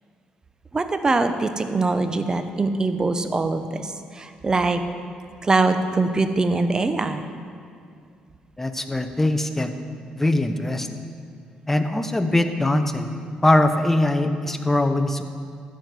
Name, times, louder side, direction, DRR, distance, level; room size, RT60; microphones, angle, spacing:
voice 1, 0.7-4.8 5.4-7.3, right 3 dB, 25° right, 8 dB, 0.7 m, -23 dB
voice 2, 8.6-9.7 10.2-10.9 11.7-13.1 13.4-15.2, left 1 dB, 10° left, 8 dB, 0.7 m, -21 dB
13.5 x 4.6 x 7.6 m, 2.3 s
cardioid pair, 90°, 3 cm